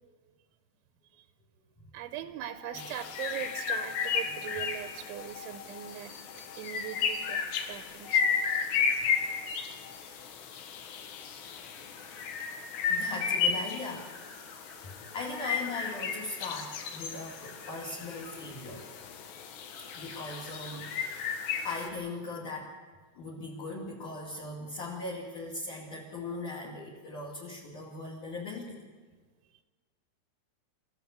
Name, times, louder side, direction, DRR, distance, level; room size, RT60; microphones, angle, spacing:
voice 1, 1.9-8.3 14.9-15.1, right 12 dB, 80° right, 10 dB, 3.2 m, -41 dB
sound 1, 2.4-7.4 8.0-8.6 9.1-9.5 9.8-13.4 13.8-16.2 16.7-19.1 19.7-21.9, left 5 dB, 90° left, 7.6 m, -51 dB
sound 2, 2.8-21.9, left 6 dB, 65° left, 3.4 m, -34 dB
voice 2, 10.8-12.2 12.9-14.1 14.8-18.9 19.9-22.8 23.2-28.8, left 3 dB, 45° left, 0 dB, 3.4 m, -40 dB
26.5 x 15.0 x 8.2 m, 1.4 s
omnidirectional pair, 5.5 m